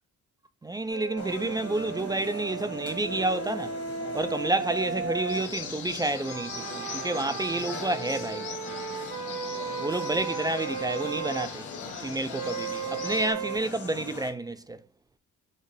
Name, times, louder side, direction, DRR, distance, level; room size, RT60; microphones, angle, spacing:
voice 1, 0.6-3.7 4.1-8.5 9.8-11.7 12.0-14.8, right 2 dB, 15° right, 0.4 m, -29 dB
sound 1, 0.9-5.4 6.1-11.5 12.3-13.6, right 5 dB, 85° right, 2.8 m, -35 dB
sound 2, 1.2-14.3, left 3 dB, 50° left, 1.6 m, -42 dB
sound 3, 5.3-13.3, left 6 dB, 90° left, 1.4 m, -41 dB
6.5 x 2.5 x 3.3 m
cardioid pair, 90°, 30 cm